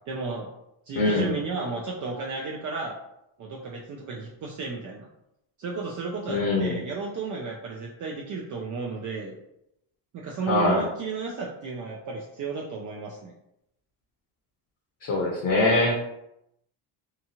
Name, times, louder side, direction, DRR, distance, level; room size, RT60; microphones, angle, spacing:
voice 1, 0.1-0.5 0.9-2.9 3.4-5.1 5.6-9.3 10.1-13.3, right 4 dB, 45° right, -2 dB, 0.4 m, -33 dB
voice 2, 0.9-1.4 6.3-6.7 10.5-10.8 15.0-16.0, left 2 dB, 45° left, -3 dB, 0.9 m, -23 dB
2.9 x 2.4 x 2.8 m, 0.81 s
cardioid pair, 125°, 47 cm